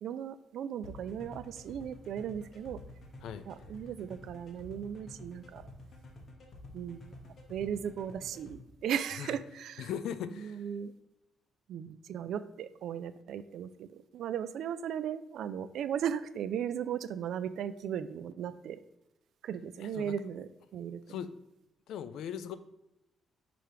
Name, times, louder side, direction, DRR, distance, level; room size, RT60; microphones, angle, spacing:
voice 1, 0.0-2.8 3.5-5.7 6.7-7.2 7.5-9.9 10.4-10.9 11.7-18.8 19.4-21.0, right 8 dB, 75° right, 14 dB, 0.3 m, -37 dB
sound 1, 0.8-8.5, left 2 dB, 45° left, 1.2 m, -49 dB
voice 2, 9.8-10.7 19.8-20.1 21.1-21.3 21.9-22.6, left 8 dB, 85° left, 13 dB, 0.4 m, -39 dB
6.0 x 3.4 x 4.7 m, 0.91 s
cardioid pair, 135°, 0 cm